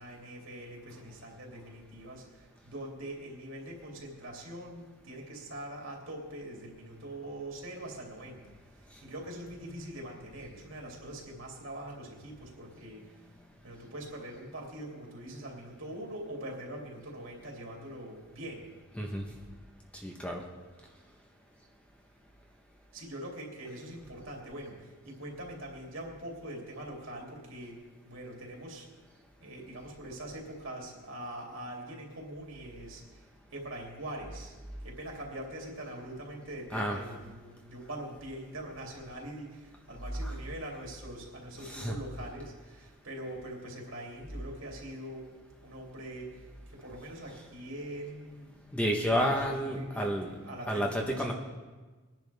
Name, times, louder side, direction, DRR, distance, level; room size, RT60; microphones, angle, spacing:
voice 1, 0.0-13.1 13.6-18.7 22.9-28.9 29.4-33.2 33.5-34.6 34.8-45.3 45.6-48.6 48.9-51.3, right 1 dB, 70° right, -1 dB, 2.9 m, -43 dB
voice 2, 18.9-19.3 20.0-20.4 36.7-37.0 40.2-40.3 41.6-42.0 48.7-50.3 50.7-51.3, equal, 5° left, 0 dB, 1.0 m, -30 dB
20.5 x 10.5 x 3.5 m, 1.3 s
head